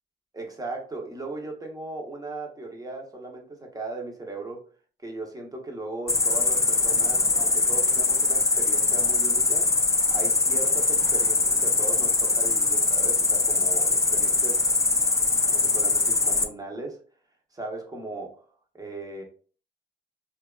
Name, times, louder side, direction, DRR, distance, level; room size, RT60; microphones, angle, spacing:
voice 1, 0.3-4.6 5.0-9.8 10.1-14.6 15.4-17.0 17.5-18.4 18.7-19.2, right 2 dB, 20° right, 1 dB, 0.7 m, -37 dB
Cricket, 6.1-16.4, left 3 dB, 15° left, 0.3 m, -22 dB
2.7 x 2.2 x 2.2 m, 0.41 s
cardioid pair, 90°, 20 cm